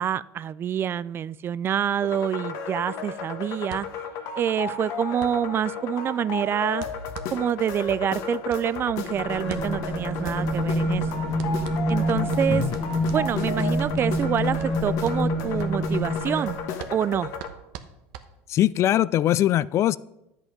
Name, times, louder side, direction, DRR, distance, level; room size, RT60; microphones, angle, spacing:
voice 1, 0.0-3.9 4.4-6.8 7.3-11.0 11.9-12.6 13.1-16.6 16.9-17.3, right 9 dB, 35° right, 18 dB, 0.3 m, -26 dB
sound 1, 2.0-17.5, left 5 dB, 60° left, 1.4 m, -34 dB
sound 2, 3.7-18.8, right 10 dB, 70° right, 1.0 m, -44 dB
sound 3, 9.1-16.8, equal, 5° right, 1.8 m, -27 dB
voice 2, 18.5-20.0, left 13 dB, 45° left, 20 dB, 0.3 m, -21 dB
10.5 x 8.3 x 5.2 m, 0.90 s
supercardioid pair, 100°, 7 cm